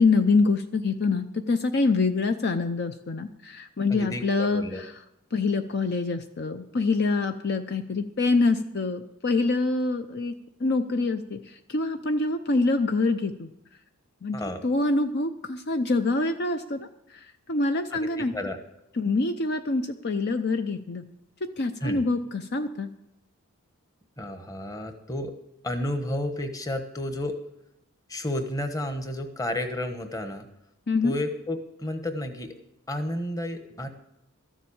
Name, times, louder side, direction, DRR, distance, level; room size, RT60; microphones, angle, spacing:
voice 1, 0.0-4.9 5.3-10.3 10.6-11.4 11.7-13.5 14.2-18.3 19.0-21.0 21.4-22.9 30.9-31.1, left 3 dB, 50° left, 7 dB, 0.6 m, -25 dB
voice 2, 3.9-4.8 14.3-14.6 17.9-18.6 21.8-22.0 24.2-25.3 25.6-27.4 28.1-30.5 31.0-32.5 32.9-33.9, left 1 dB, 15° left, 7 dB, 1.1 m, -31 dB
13.5 x 7.4 x 8.6 m, 0.84 s
head